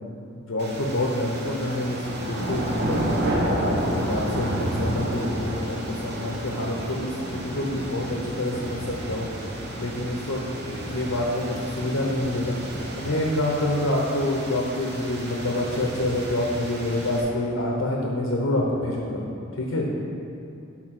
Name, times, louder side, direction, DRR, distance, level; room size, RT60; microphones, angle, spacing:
voice 1, 0.4-3.0 3.6-9.2 9.8-12.6 13.0-19.2 19.6-19.9, left 1 dB, 85° left, -1 dB, 0.8 m, -27 dB
sound 1, 0.6-17.2, right 1 dB, 55° right, 0.9 m, -31 dB
6.5 x 4.1 x 5.9 m, 2.6 s
head